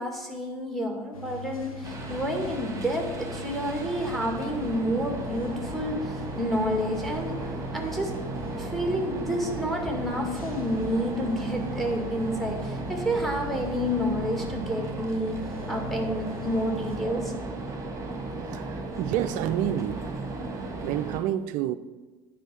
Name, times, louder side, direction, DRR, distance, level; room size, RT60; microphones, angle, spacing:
voice 1, 0.0-7.4 7.7-8.1 8.5-15.4 15.7-17.3, equal, ahead, 2.0 m, -29 dB
sound 1, 1.1-17.0, left 4 dB, 80° left, 1.5 m, -42 dB
sound 2, 1.8-21.2, right 2 dB, 20° right, 2.0 m, -35 dB
voice 2, 19.0-20.0 20.8-21.7, right 11 dB, 45° right, 0.5 m, -28 dB
9.1 x 5.1 x 7.4 m
figure-of-eight pair, 70°, 18 cm